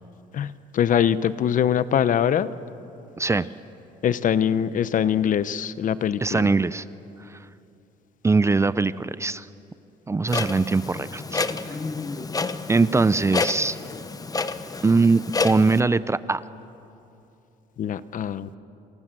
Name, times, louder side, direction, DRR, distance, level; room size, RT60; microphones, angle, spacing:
voice 1, 0.3-2.5 4.0-6.5 17.8-18.5, left 9 dB, 50° left, 15 dB, 1.0 m, -23 dB
voice 2, 6.2-6.8 7.3-7.4 8.2-9.5 10.1-11.8 12.7-13.8 14.8-16.4, right 3 dB, 15° right, 16 dB, 0.6 m, -21 dB
Clock, 10.3-15.8, left 4 dB, 20° left, 1.1 m, -29 dB
28.5 x 27.5 x 7.7 m, 2.8 s
cardioid pair, 110°, 17 cm